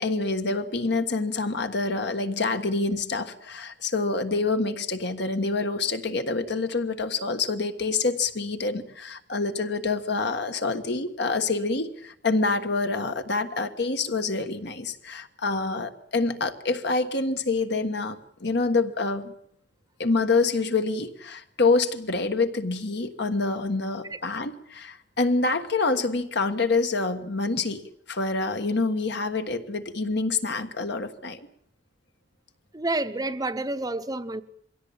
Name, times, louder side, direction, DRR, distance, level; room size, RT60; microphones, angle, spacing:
voice 1, 0.0-19.3 20.0-27.8 28.1-31.4, left 3 dB, 65° left, 1.5 m, -26 dB
voice 2, 32.7-34.4, right 2 dB, 20° right, 0.8 m, -29 dB
22.5 x 16.5 x 8.7 m
head